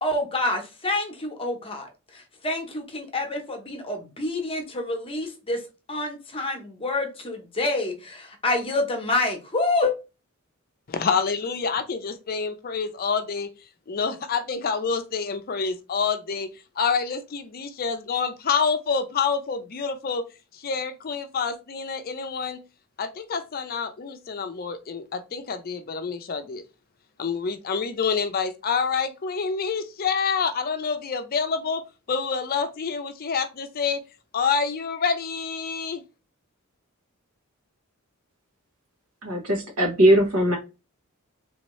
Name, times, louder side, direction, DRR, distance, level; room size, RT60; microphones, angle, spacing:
voice 1, 0.0-1.9 2.1-5.6 5.9-9.9, left 2 dB, 25° left, 4 dB, 0.9 m, -27 dB
voice 2, 10.9-13.5 13.9-16.5 16.8-20.2 20.5-22.6 23.0-26.6 27.2-31.8 32.1-34.0 34.3-36.0, left 5 dB, 45° left, 8 dB, 0.5 m, -27 dB
voice 3, 39.2-40.6, right 1 dB, 85° right, 3 dB, 1.3 m, -20 dB
3.4 x 2.8 x 3.1 m, 0.29 s
head